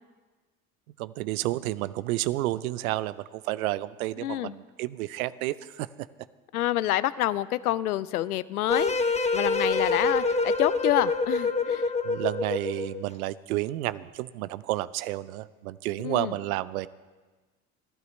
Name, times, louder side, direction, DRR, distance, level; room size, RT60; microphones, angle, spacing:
voice 1, 1.0-5.9 12.0-16.9, right 16 dB, 75° right, 18 dB, 0.6 m, -31 dB
voice 2, 4.2-4.5 6.5-8.9 9.3-11.9 16.0-16.3, left 14 dB, 85° left, 18 dB, 0.5 m, -28 dB
sound 1, 8.7-13.0, left 3 dB, 15° left, 1.1 m, -26 dB
29.0 x 12.0 x 3.2 m, 1.3 s
hypercardioid pair, 65°, 43 cm